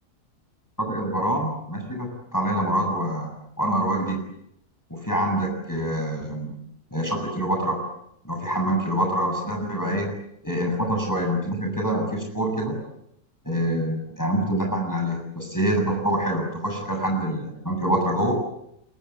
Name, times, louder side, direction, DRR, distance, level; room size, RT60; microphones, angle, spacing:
voice 1, 0.8-4.3 4.9-6.6 6.9-7.8 8.2-10.1 10.4-12.8 13.4-18.3, right 1 dB, 10° left, 2 dB, 7.6 m, -25 dB
27.5 x 24.0 x 8.4 m, 0.78 s
omnidirectional pair, 1.7 m